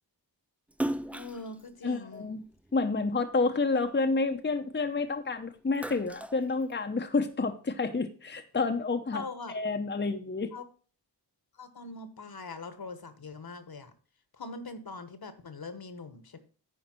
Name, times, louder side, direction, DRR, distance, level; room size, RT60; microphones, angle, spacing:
Splash splatter, 0.7-3.3 3.7-5.2 5.5-7.2, right 1 dB, 5° right, 0.4 m, -38 dB
voice 1, 1.1-2.3 9.1-9.5 10.5-10.6 11.5-13.9 14.3-16.4, left 3 dB, 55° left, 11 dB, 1.3 m, -42 dB
voice 2, 1.8-2.4 2.7-9.2 9.5-10.5, left 3 dB, 25° left, 5 dB, 0.8 m, -29 dB
9.7 x 5.0 x 6.1 m, 0.40 s
wide cardioid pair, 65°, 42 cm